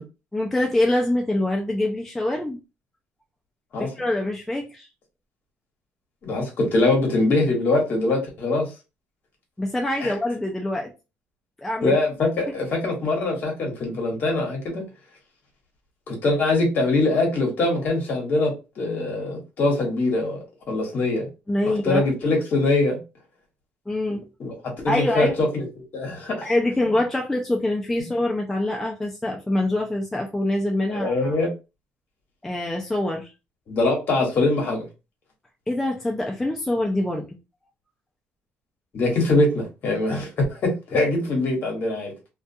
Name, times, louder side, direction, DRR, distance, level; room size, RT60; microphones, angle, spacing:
voice 1, 0.3-2.6 3.8-4.9 9.6-10.9 11.6-11.9 21.5-22.0 23.9-24.2 24.9-25.3 26.4-31.4 32.4-33.3 35.7-37.3, left 1 dB, 5° left, 0.4 m, -24 dB
voice 2, 6.2-8.7 10.0-10.1 11.8-14.8 16.1-20.4 20.7-21.3 21.7-23.0 24.1-25.7 25.9-26.4 30.9-31.5 33.7-34.8 38.9-42.1, left 2 dB, 45° left, 1.1 m, -23 dB
2.3 x 2.2 x 2.6 m
cardioid pair, 150°, 4 cm